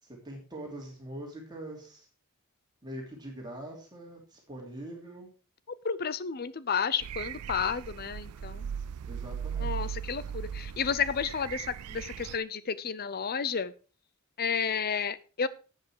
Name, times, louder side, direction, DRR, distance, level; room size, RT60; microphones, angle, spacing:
voice 1, 0.0-2.1 2.8-5.3 9.0-9.9, right 1 dB, 20° right, -1 dB, 3.0 m, -43 dB
voice 2, 5.8-8.7 9.6-11.6 11.9-13.7 14.4-15.5, left 6 dB, 45° left, 16 dB, 0.7 m, -31 dB
sound 1, 7.0-12.4, right 8 dB, 85° right, 0.4 m, -38 dB
11.5 x 8.3 x 4.7 m, 0.34 s
head